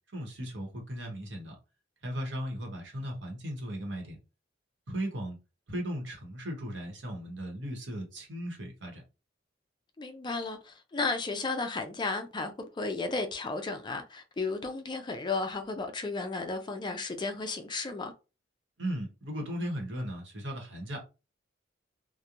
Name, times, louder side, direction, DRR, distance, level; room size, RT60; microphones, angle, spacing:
voice 1, 0.1-1.6 2.0-4.2 4.9-5.4 5.7-9.0 18.8-21.0, equal, 75° right, 1.0 m, -37 dB
voice 2, 10.0-18.1, left 3 dB, 25° left, 0.4 m, -34 dB
2.9 x 2.1 x 2.4 m
head